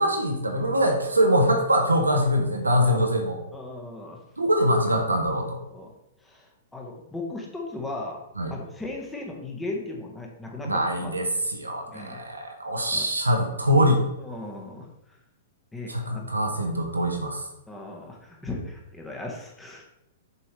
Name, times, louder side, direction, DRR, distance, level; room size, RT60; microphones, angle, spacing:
voice 1, 0.0-3.4 4.4-5.6 8.4-8.5 10.6-14.0 15.9-17.5, equal, 90° right, 2 dB, 1.3 m, -23 dB
voice 2, 3.5-4.2 5.7-5.9 6.2-8.2 8.5-11.1 11.9-12.2 12.9-13.1 14.2-14.9 15.7-16.3 17.7-20.0, left 2 dB, 10° left, -1 dB, 1.4 m, -37 dB
7.0 x 4.6 x 3.3 m, 0.85 s
figure-of-eight pair, 110°, 0 cm